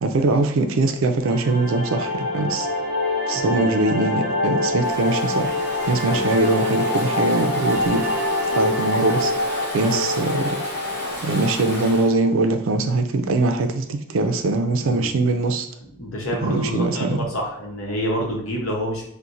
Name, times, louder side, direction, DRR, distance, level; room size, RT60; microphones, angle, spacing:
voice 1, 0.0-2.7 3.3-5.5 5.9-8.2 8.6-9.3 9.7-10.6 11.2-15.7 16.4-17.2, right 2 dB, 70° right, 6 dB, 0.4 m, -22 dB
sound 1, 1.2-12.3, left 2 dB, 20° right, 0.7 m, -25 dB
voice 2, 3.3-3.7 6.1-6.3 14.8-15.1 16.0-19.0, equal, 75° left, -1 dB, 0.9 m, -28 dB
Stream / Ocean, 4.8-12.1, equal, 10° left, 1.0 m, -34 dB
4.1 x 2.1 x 2.5 m, 0.74 s
head